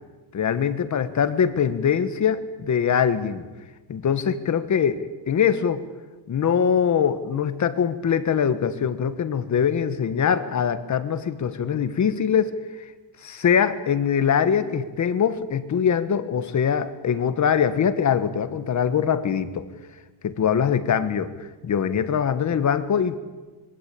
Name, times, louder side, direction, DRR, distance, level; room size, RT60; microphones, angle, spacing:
voice 1, 0.3-3.4 3.9-5.8 6.3-12.6 13.2-19.7 20.2-21.3 21.6-23.2, left 7 dB, 35° left, 11 dB, 1.7 m, -23 dB
25.5 x 23.5 x 8.7 m, 1.2 s
cardioid pair, 170°, 48 cm